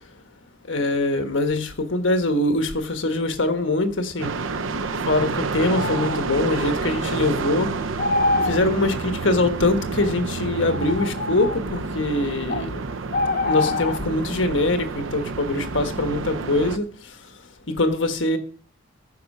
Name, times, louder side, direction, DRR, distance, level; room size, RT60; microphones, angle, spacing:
voice 1, 0.7-4.3 5.1-7.7 8.4-12.8 13.4-16.9 17.7-18.4, left 2 dB, 70° left, 1.4 m, -23 dB
sound 1, 4.2-16.8, right 4 dB, 85° right, 0.7 m, -29 dB
sound 2, 5.6-6.2 8.0-8.6 10.0-10.1 10.7-11.6 12.5-12.6 13.1-14.0, left 3 dB, 50° left, 0.7 m, -25 dB
15.0 x 6.3 x 5.5 m
head